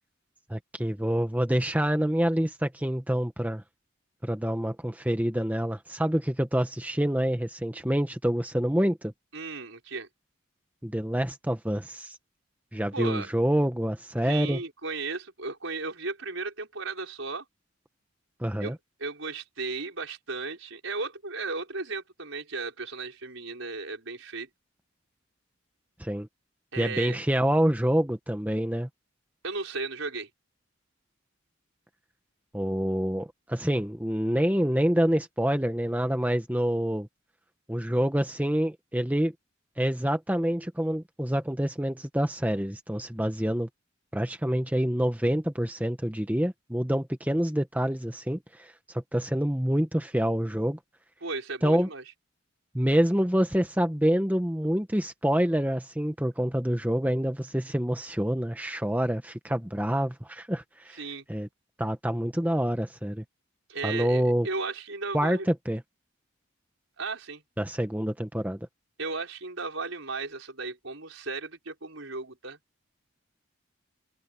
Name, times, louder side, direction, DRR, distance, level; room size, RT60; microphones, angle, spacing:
voice 1, 0.5-3.6 4.2-9.1 10.8-12.2 12.7-14.6 18.4-18.8 26.0-26.3 26.8-28.9 32.5-37.1 37.7-39.3 39.8-43.7 44.1-48.7 49.1-50.8 51.6-51.9 52.7-61.0 61.3-61.5 61.8-63.2 63.8-64.5 65.1-65.8 67.6-68.6, equal, 10° right, 1.2 m, -27 dB
voice 2, 9.3-10.1 12.9-13.3 14.2-17.4 18.6-24.5 26.7-27.2 29.4-30.3 51.2-52.0 60.9-61.2 63.7-65.5 67.0-67.4 69.0-72.6, right 3 dB, 70° right, 5.6 m, -35 dB
head